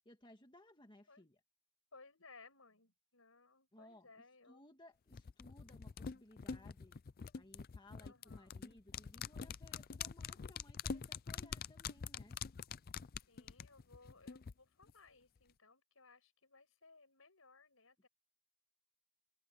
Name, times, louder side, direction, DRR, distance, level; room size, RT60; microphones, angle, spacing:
voice 1, 0.1-1.4 3.7-4.1 4.5-7.0 7.3-12.4, left 1 dB, 25° left, 1.8 m, -62 dB
voice 2, 1.9-4.6 8.0-8.5 13.2-18.1, left 3 dB, 80° left, 6.6 m, -62 dB
sound 1, 5.1-14.5 14.8-14.9, left 6 dB, 45° left, 0.5 m, -45 dB
head